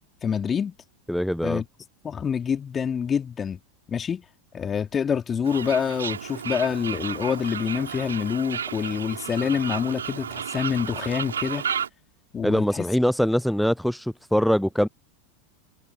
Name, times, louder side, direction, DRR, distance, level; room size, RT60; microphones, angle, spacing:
voice 1, 0.2-0.7 1.4-1.7 2.0-3.6 3.9-4.3 4.5-11.6 12.3-12.9, left 7 dB, 25° left, 3.5 m, -26 dB
voice 2, 1.1-1.6 12.4-14.9, equal, ahead, 0.6 m, -23 dB
Fowl, 5.4-11.9, right 8 dB, 70° right, 5.2 m, -32 dB
figure-of-eight pair, 85°, 0 cm